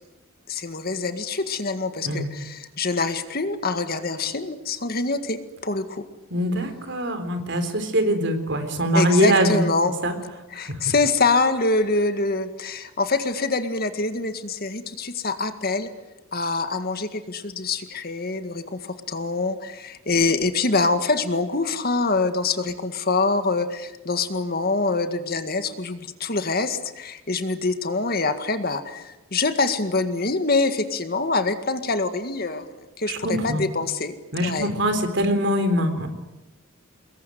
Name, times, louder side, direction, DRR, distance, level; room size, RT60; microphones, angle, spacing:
voice 1, 0.5-6.0 8.9-9.9 10.5-15.9 16.3-34.1 34.4-34.7, left 3 dB, 45° left, 9 dB, 1.9 m, -25 dB
voice 2, 6.3-9.7 10.0-10.1 10.7-10.9 33.1-33.7 34.3-36.1, right 1 dB, 55° right, 8 dB, 3.8 m, -23 dB
25.0 x 21.5 x 9.5 m, 1.0 s
head